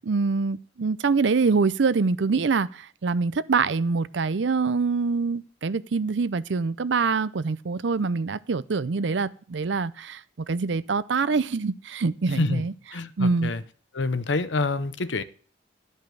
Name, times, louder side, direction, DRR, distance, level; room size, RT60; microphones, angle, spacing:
voice 1, 0.1-10.2 10.5-12.7 13.2-13.5, right 4 dB, 70° right, 0.5 m, -25 dB
voice 2, 12.3-12.6 12.9-13.6 13.9-15.2, left 3 dB, 75° left, 0.8 m, -27 dB
12.5 x 5.5 x 7.6 m
head